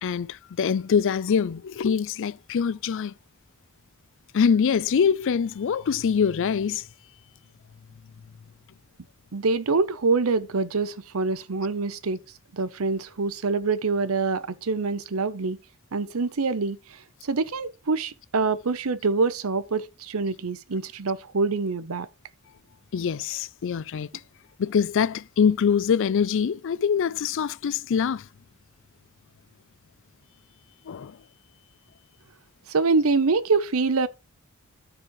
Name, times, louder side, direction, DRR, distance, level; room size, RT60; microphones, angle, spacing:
voice 1, 0.0-3.1 4.3-6.9 22.9-24.1 24.6-28.3 30.9-31.2, left 6 dB, 60° left, 0.4 m, -24 dB
voice 2, 9.3-12.2 12.5-15.6 15.9-22.1 32.7-34.1, right 4 dB, 75° right, 0.8 m, -25 dB
13.0 x 5.0 x 3.1 m
head